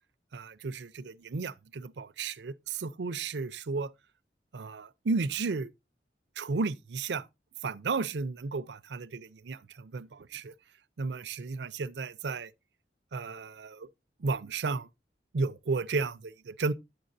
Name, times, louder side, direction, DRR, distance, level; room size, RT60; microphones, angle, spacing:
voice 1, 0.3-3.9 4.5-5.7 6.4-7.3 7.6-10.5 11.0-12.5 13.1-13.9 14.2-14.9 15.3-16.7, right 4 dB, 80° right, 0.5 m, -33 dB
10.5 x 7.6 x 2.6 m
head